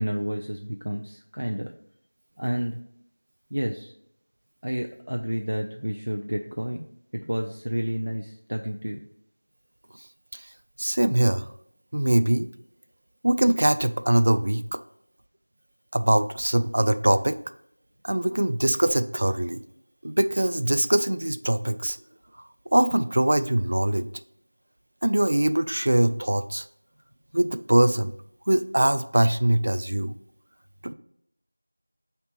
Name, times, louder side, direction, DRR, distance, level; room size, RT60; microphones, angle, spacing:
voice 1, 0.0-1.7 2.4-2.8 3.5-3.9 4.6-6.9 7.1-9.0, equal, 80° right, 3 dB, 0.6 m, -30 dB
voice 2, 10.8-11.5 11.9-12.5 13.2-14.8 15.9-17.4 18.0-19.6 20.0-22.0 22.7-24.1 25.0-26.7 27.3-28.1 28.5-30.2 30.8-30.9, right 1 dB, 40° right, 12 dB, 0.3 m, -22 dB
4.3 x 4.1 x 5.6 m, 0.72 s
figure-of-eight pair, 180°, 0 cm